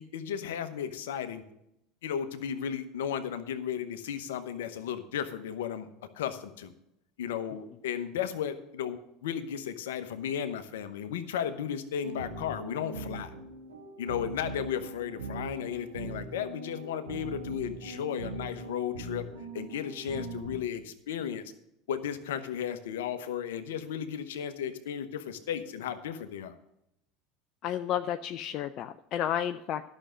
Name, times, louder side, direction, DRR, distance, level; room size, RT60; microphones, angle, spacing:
voice 1, 0.0-1.4 2.0-5.9 6.1-6.7 7.2-13.3 14.0-19.3 19.5-21.4 21.9-26.5, left 8 dB, 70° left, 10 dB, 0.9 m, -34 dB
sound 1, 12.0-20.6, right 3 dB, 85° right, 1.5 m, -41 dB
voice 2, 27.6-29.8, left 10 dB, 50° left, 9 dB, 0.5 m, -31 dB
12.0 x 6.3 x 6.4 m, 0.81 s
hypercardioid pair, 75°, 0 cm